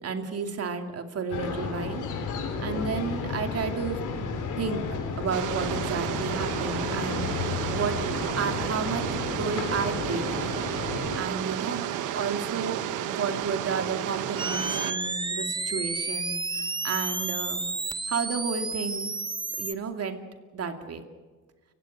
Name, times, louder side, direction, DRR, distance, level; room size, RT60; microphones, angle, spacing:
voice 1, 0.0-4.3 4.6-4.8 5.2-8.0 8.4-10.6 11.2-11.9 12.1-17.7 18.1-19.1 19.6-20.2 20.5-21.0, right 5 dB, 55° right, 6 dB, 2.6 m, -32 dB
sound 1, 1.3-11.2, left 5 dB, 80° left, 3.8 m, -32 dB
sound 2, 5.3-14.9, right 11 dB, 90° right, 1.2 m, -32 dB
sound 3, 14.4-19.7, right 3 dB, 15° right, 0.9 m, -31 dB
30.0 x 16.5 x 6.5 m, 1.4 s
cardioid pair, 90°, 30 cm